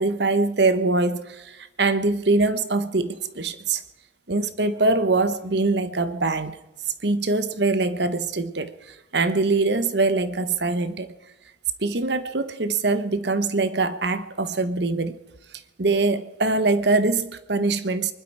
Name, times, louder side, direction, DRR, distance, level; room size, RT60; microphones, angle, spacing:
voice 1, 0.0-3.8 4.3-6.6 7.0-11.1 11.8-15.2 15.8-18.1, right 3 dB, 65° right, 1.1 m, -23 dB
24.0 x 12.0 x 4.8 m
head